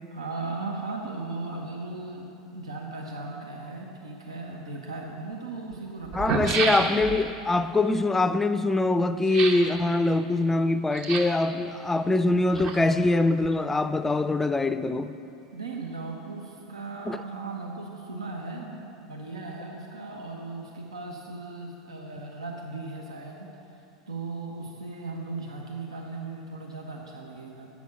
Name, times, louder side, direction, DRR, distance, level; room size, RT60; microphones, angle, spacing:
voice 1, 0.1-6.4 15.5-27.7, right 3 dB, 90° right, 0.9 m, -37 dB
sound 1, 4.8-4.9 5.7-5.8 6.0-7.3 9.2-9.7 10.9-11.5 12.3-13.1 13.4-13.5, right 4 dB, 50° right, 1.0 m, -29 dB
voice 2, 6.1-15.1 17.1-17.2, left 2 dB, 10° left, 0.4 m, -23 dB
8.2 x 6.2 x 7.0 m
hypercardioid pair, 90°, 3 cm